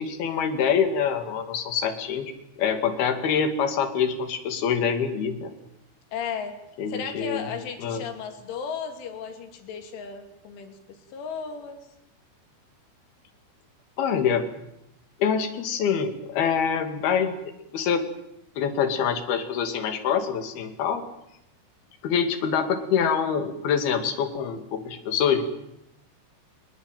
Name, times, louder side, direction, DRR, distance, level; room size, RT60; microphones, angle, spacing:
voice 1, 0.0-5.5 6.8-7.5 7.8-8.0 14.0-14.5 15.2-17.4 17.7-18.1 18.6-21.0 22.0-25.4, left 7 dB, 55° left, 7 dB, 4.0 m, -25 dB
voice 2, 6.1-6.6 6.9-11.8, left 6 dB, 70° left, 6 dB, 5.1 m, -35 dB
24.5 x 20.0 x 9.2 m, 0.81 s
omnidirectional pair, 5.8 m